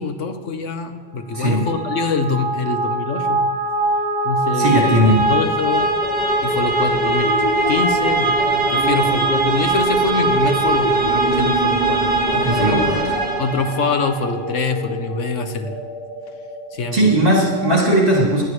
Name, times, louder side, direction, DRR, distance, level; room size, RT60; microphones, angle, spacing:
voice 1, 0.0-3.5 4.2-4.9 5.1-5.9 6.4-7.3 7.7-12.9 13.4-15.8 16.7-17.1, left 4 dB, 80° left, 7 dB, 1.3 m, -24 dB
sound 1, 1.3-14.1, right 2 dB, 10° right, 1.7 m, -21 dB
voice 2, 4.6-5.2 12.4-13.1 16.9-18.4, right 1 dB, 45° right, -6 dB, 3.9 m, -17 dB
sound 2, 6.0-17.9, right 1 dB, 40° left, 1.9 m, -29 dB
19.5 x 11.5 x 3.2 m, 1.5 s
omnidirectional pair, 1.3 m